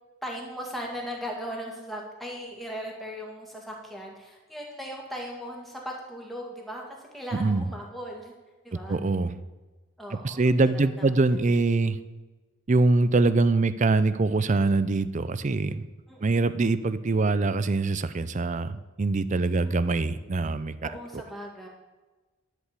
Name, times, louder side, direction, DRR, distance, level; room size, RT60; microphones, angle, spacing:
voice 1, 0.2-6.8 7.1-8.3 8.6-9.0 10.0-10.7 11.0-11.1 16.1-16.5 19.3-19.7 20.8-21.7, equal, ahead, -1 dB, 1.9 m, -38 dB
voice 2, 7.3-7.7 8.7-9.4 10.1-12.0 12.7-15.9 16.2-21.2, right 3 dB, 35° right, 14 dB, 0.5 m, -24 dB
11.5 x 5.2 x 8.3 m, 1.2 s
head